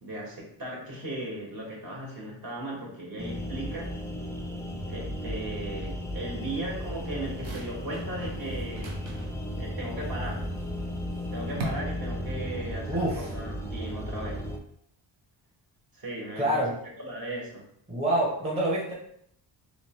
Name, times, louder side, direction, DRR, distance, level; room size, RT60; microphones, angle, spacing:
voice 1, 0.0-3.9 4.9-9.0 9.6-10.4 11.3-14.4 15.9-16.6 17.0-17.6, right 1 dB, 50° right, -4 dB, 1.5 m, -37 dB
sound 1, 3.2-14.6, equal, 5° left, 0.4 m, -35 dB
sound 2, 6.4-11.6, right 5 dB, 75° right, 0.9 m, -45 dB
voice 2, 12.9-13.3 16.4-16.7 17.9-18.9, right 1 dB, 15° right, -5 dB, 0.8 m, -26 dB
3.2 x 3.0 x 3.0 m, 0.71 s
cardioid pair, 95°, 46 cm